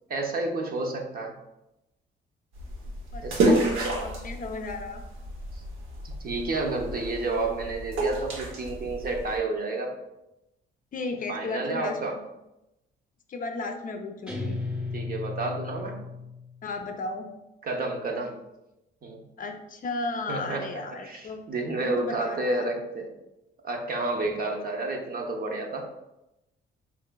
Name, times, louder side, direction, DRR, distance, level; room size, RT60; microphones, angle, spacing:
voice 1, 0.1-1.4 3.2-3.9 5.5-5.6 6.0-9.9 11.3-12.1 14.9-16.0 17.6-18.4 19.0-19.2 20.3-20.7 21.0-23.1 23.6-25.9, right 2 dB, 50° right, 2 dB, 0.7 m, -30 dB
sound 1, 2.6-9.4, right 2 dB, 80° right, 0.8 m, -30 dB
voice 2, 3.1-3.6 4.0-5.0 10.9-12.0 13.3-14.6 16.6-17.3 19.4-21.4 21.8-22.7, left 3 dB, 45° left, 4 dB, 0.5 m, -34 dB
Guitar, 14.3-16.9, left 3 dB, 5° right, 0.8 m, -35 dB
4.6 x 3.1 x 2.2 m, 0.92 s
cardioid pair, 90°, 20 cm